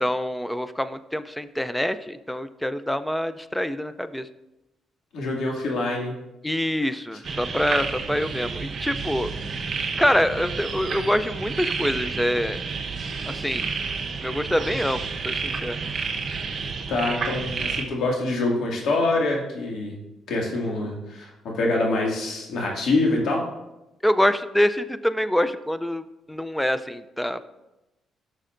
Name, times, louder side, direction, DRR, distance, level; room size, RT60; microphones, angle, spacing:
voice 1, 0.0-4.2 6.4-9.3 10.0-12.6 13.3-13.7 14.2-15.8 24.0-26.0 26.3-27.5, equal, 5° left, 13 dB, 0.4 m, -25 dB
voice 2, 5.1-6.1 16.9-20.0 20.3-23.4, left 2 dB, 70° left, -1 dB, 2.2 m, -25 dB
sound 1, 7.2-17.8, right 5 dB, 50° right, 1.0 m, -30 dB
12.5 x 6.3 x 2.6 m, 0.95 s
cardioid pair, 90°, 0 cm